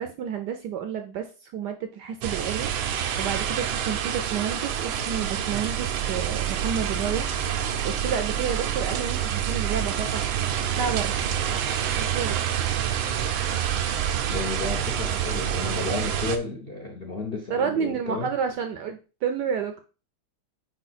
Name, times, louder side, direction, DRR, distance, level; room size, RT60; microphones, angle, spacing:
voice 1, 0.0-7.3 7.8-10.2 10.8-11.1 12.0-12.4 17.5-19.7, right 7 dB, 70° right, 1.0 m, -30 dB
sound 1, 2.2-16.4, right 9 dB, 90° right, 1.6 m, -27 dB
voice 2, 14.3-18.3, left 3 dB, 70° left, 0.5 m, -32 dB
5.0 x 4.8 x 4.1 m
omnidirectional pair, 2.3 m